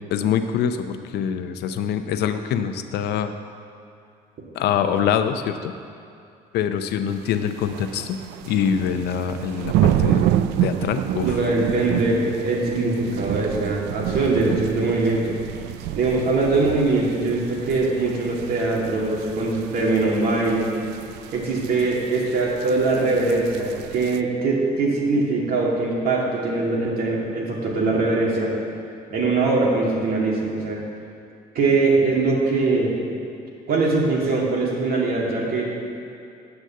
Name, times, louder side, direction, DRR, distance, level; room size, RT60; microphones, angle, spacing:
voice 1, 0.1-3.3 4.5-5.7 6.5-8.2 8.4-10.3 10.6-11.4, left 8 dB, 75° left, 9 dB, 0.7 m, -24 dB
sound 1, 7.1-24.2, right 12 dB, 90° right, 0.4 m, -29 dB
voice 2, 11.2-15.4 16.0-20.7 21.3-28.5 29.1-30.8 31.5-33.0 33.7-35.7, right 3 dB, 60° right, -3 dB, 2.4 m, -22 dB
8.3 x 6.5 x 7.6 m, 2.5 s
cardioid pair, 110°, 17 cm